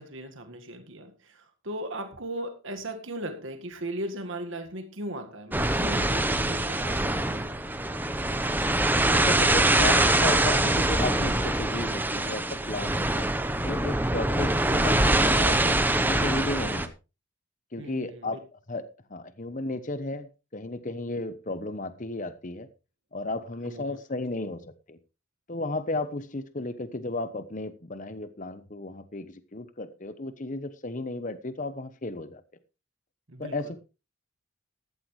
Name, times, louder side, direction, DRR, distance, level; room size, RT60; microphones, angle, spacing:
voice 1, 0.0-7.5 17.8-18.4 23.7-24.0 33.3-33.6, right 1 dB, 65° right, 6 dB, 1.8 m, -37 dB
sound 1, 5.5-16.9, right 1 dB, 10° right, 0.9 m, -24 dB
voice 2, 9.1-13.3 13.6-15.8 16.1-16.9 17.7-18.4 18.7-18.8 19.1-22.7 23.1-25.0 25.5-32.4 33.4-33.8, left 2 dB, 35° left, 11 dB, 0.9 m, -34 dB
14.5 x 12.0 x 3.2 m, 0.29 s
head